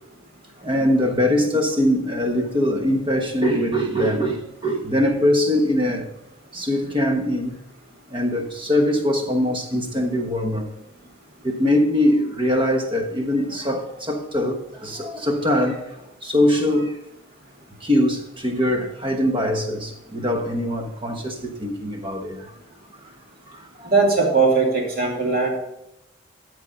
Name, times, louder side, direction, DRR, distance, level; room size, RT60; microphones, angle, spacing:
voice 1, 0.6-6.1 6.5-7.5 8.1-10.7 11.4-15.8 16.2-17.0 17.8-22.5 23.8-23.9, left 1 dB, 25° right, 1.2 m, -22 dB
voice 2, 23.8-25.5, right 4 dB, 45° right, 2.8 m, -19 dB
13.0 x 5.1 x 5.8 m
head